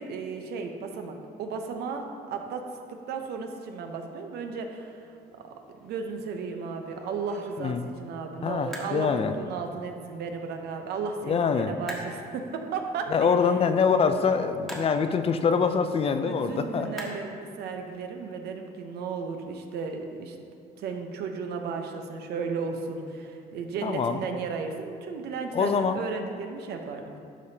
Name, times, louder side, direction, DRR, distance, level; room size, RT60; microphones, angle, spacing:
voice 1, 0.0-2.6 2.9-5.5 5.8-13.4 16.0-20.4 20.8-27.2, right 5 dB, 75° right, 4 dB, 0.8 m, -35 dB
sound 1, 4.8-18.0, equal, ahead, 1.3 m, -47 dB
voice 2, 8.4-9.3 11.3-11.7 13.1-16.9 23.8-24.2 25.5-26.0, left 6 dB, 35° left, 9 dB, 0.4 m, -24 dB
12.0 x 5.1 x 2.8 m, 2.6 s
cardioid pair, 110°, 17 cm